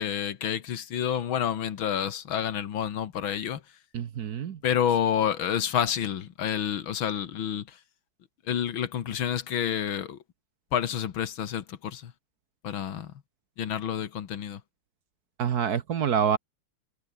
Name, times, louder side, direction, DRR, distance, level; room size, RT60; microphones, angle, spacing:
voice 1, 0.0-3.6 4.6-7.8 8.5-10.2 10.7-12.1 12.6-13.1 13.6-14.6, left 9 dB, 75° left, 2.1 m, -29 dB
voice 2, 3.9-4.6 15.4-16.4, right 7 dB, 55° right, 1.4 m, -26 dB
omnidirectional pair, 2.3 m